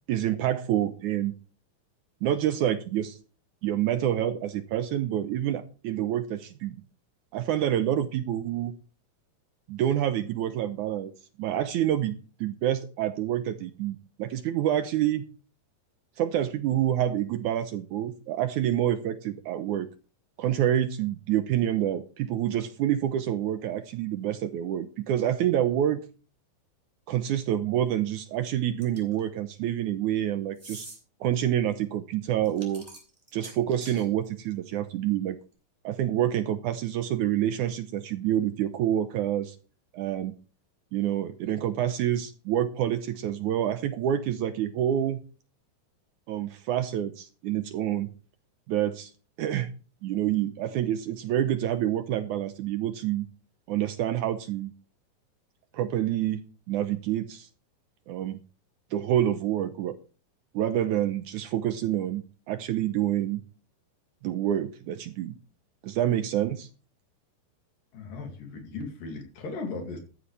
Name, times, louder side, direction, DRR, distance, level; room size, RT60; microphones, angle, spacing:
voice 1, 0.1-1.3 2.2-3.2 3.6-6.8 7.3-8.7 9.7-11.1 11.4-15.2 16.2-19.9 20.4-26.0 27.1-30.9 31.2-32.9 33.3-35.4 35.8-39.6 39.9-40.4 40.9-45.2 46.3-48.1 48.7-49.1 49.4-49.7 50.0-53.3 53.7-54.7 55.7-56.4 56.7-57.5 58.1-58.4 58.9-60.0 60.5-63.4 64.2-65.4 65.8-66.7, right 11 dB, 75° right, 10 dB, 2.0 m, -27 dB
sound 1, 28.8-29.2 30.6-31.0 32.4-34.1, right 2 dB, 10° right, 4.5 m, -45 dB
voice 2, 67.9-70.0, left 3 dB, 70° left, 4 dB, 4.1 m, -37 dB
14.0 x 11.5 x 3.3 m, 0.37 s
omnidirectional pair, 4.1 m